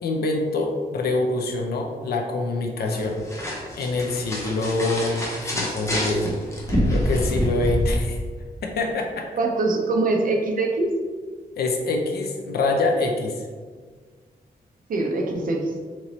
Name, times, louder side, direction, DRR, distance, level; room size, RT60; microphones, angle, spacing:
voice 1, 0.0-3.2 3.8-6.4 6.9-8.2 8.6-9.3 11.6-13.5, left 2 dB, 80° left, 2 dB, 0.5 m, -25 dB
sound 1, 2.9-7.9, equal, 20° left, 0.7 m, -26 dB
voice 2, 9.4-10.9 14.9-15.7, right 3 dB, 60° right, 1 dB, 0.5 m, -23 dB
3.0 x 2.9 x 3.9 m, 1.5 s
wide cardioid pair, 150°, 16 cm